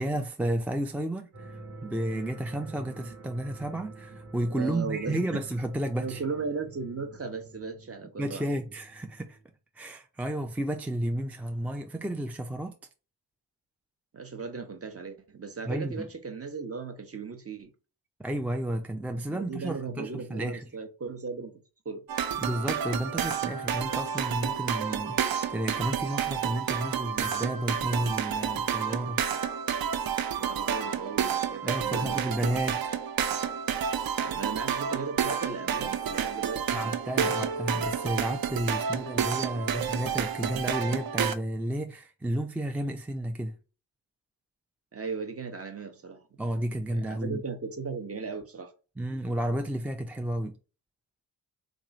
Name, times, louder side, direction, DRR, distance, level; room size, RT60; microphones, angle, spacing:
voice 1, 0.0-6.2 8.2-9.4 9.8-12.8 15.7-16.1 18.2-20.6 22.4-29.2 31.6-33.0 36.7-43.6 46.4-47.4 49.0-50.6, right 1 dB, 5° right, 0.4 m, -32 dB
sound 1, 1.3-9.5, right 2 dB, 90° right, 1.3 m, -47 dB
voice 2, 4.5-5.4 6.0-8.4 14.1-17.7 19.3-21.6 21.8-22.0 30.4-32.3 34.2-36.9 44.9-46.4 46.9-48.7, right 4 dB, 30° right, 0.9 m, -37 dB
sound 2, 22.1-41.4, right 8 dB, 50° right, 0.6 m, -30 dB
2.9 x 2.5 x 3.9 m
supercardioid pair, 50°, 47 cm